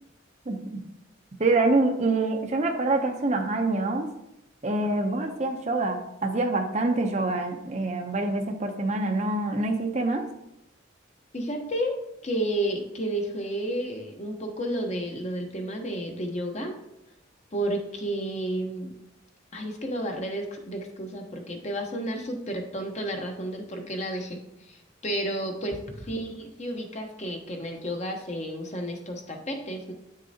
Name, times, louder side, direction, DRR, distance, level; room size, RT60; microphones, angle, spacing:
voice 1, 1.4-4.1 4.6-10.2, right 2 dB, 35° right, 4 dB, 0.7 m, -25 dB
voice 2, 11.3-12.0 12.2-16.7 17.5-18.9 19.5-29.9, right 1 dB, 35° left, 3 dB, 0.9 m, -31 dB
8.7 x 6.4 x 2.8 m, 0.83 s
head